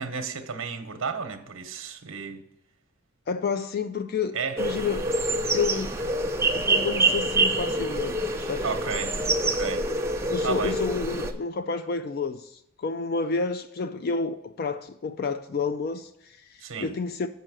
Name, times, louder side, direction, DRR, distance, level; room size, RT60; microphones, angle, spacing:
voice 1, 0.0-2.4 4.3-4.6 8.6-9.1 9.5-9.9 10.4-10.8 16.6-16.9, right 5 dB, 75° right, 0.9 m, -32 dB
voice 2, 3.3-5.1 5.5-5.9 6.5-8.7 10.3-17.3, left 4 dB, 45° left, 0.3 m, -30 dB
sound 1, 4.6-11.3, right 2 dB, 10° right, 0.6 m, -26 dB
7.6 x 5.5 x 6.1 m
head